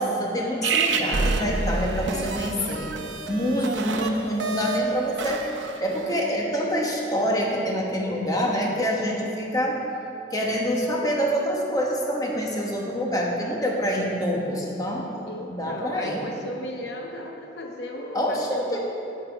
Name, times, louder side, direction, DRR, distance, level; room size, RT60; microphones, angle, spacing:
voice 1, 0.0-2.9 3.3-5.4 5.8-9.8 10.3-15.0 15.5-16.2 18.1-18.8, equal, 20° left, -2 dB, 1.1 m, -26 dB
sound 1, 0.6-6.1, right 4 dB, 85° right, 0.7 m, -28 dB
voice 2, 15.3-18.9, left 1 dB, 65° left, 1 dB, 0.7 m, -35 dB
9.4 x 7.6 x 4.6 m, 2.9 s
head